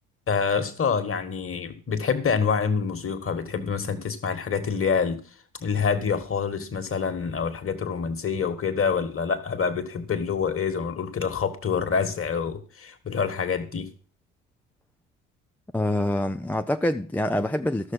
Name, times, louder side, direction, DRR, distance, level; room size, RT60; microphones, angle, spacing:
voice 1, 0.3-5.2 5.6-13.9, left 6 dB, 35° left, 1.8 m, -26 dB
voice 2, 15.7-17.9, left 1 dB, 5° left, 0.4 m, -25 dB
13.0 x 6.5 x 5.7 m
hypercardioid pair, 55°, 40 cm